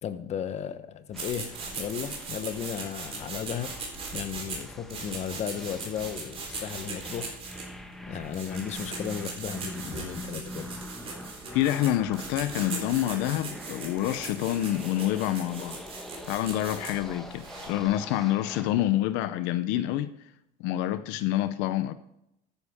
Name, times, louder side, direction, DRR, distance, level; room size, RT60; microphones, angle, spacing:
voice 1, 0.0-3.7 4.1-7.4 8.1-10.7, left 8 dB, 35° left, 0.9 m, -35 dB
sound 1, 1.1-18.8, equal, ahead, 1.2 m, -44 dB
sound 2, 1.1-17.8, right 4 dB, 30° right, 3.8 m, -39 dB
voice 2, 11.5-15.8 16.3-20.1 20.6-21.9, left 13 dB, 75° left, 0.7 m, -27 dB
13.5 x 10.0 x 3.6 m
cardioid pair, 145°, 18 cm